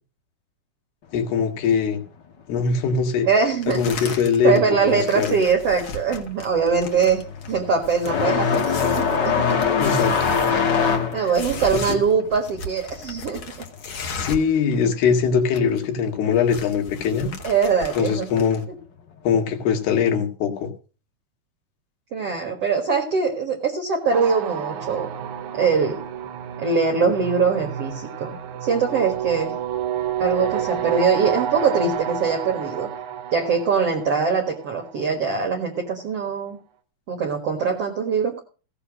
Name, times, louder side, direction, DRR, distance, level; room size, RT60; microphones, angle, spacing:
voice 1, 1.1-2.0 2.5-3.3 3.8-5.4 9.7-10.4 11.1-11.3 11.9-12.0 14.2-17.3 18.0-18.6 19.2-20.7, left 6 dB, 85° left, 5 dB, 3.9 m, -22 dB
voice 2, 3.2-4.2 4.4-7.2 7.5-9.6 11.1-13.4 17.4-18.3 22.1-25.1 25.5-26.0 26.6-29.5 30.2-32.9 33.3-36.6 37.1-38.4, right 5 dB, 50° right, 1 dB, 2.1 m, -22 dB
sound 1, 3.6-4.6 4.9-14.6 14.8-14.9 15.2-15.8 16.1-18.6, left 3 dB, 50° left, 1.6 m, -36 dB
sound 2, 5.6-5.8 6.1-14.4 14.7-15.7 16.7-16.8 17.6-17.7 19.5-19.6, left 6 dB, 65° left, 1.0 m, -23 dB
sound 3, 24.1-35.3, right 9 dB, 65° right, 2.0 m, -30 dB
16.0 x 7.0 x 6.2 m, 0.36 s
omnidirectional pair, 4.5 m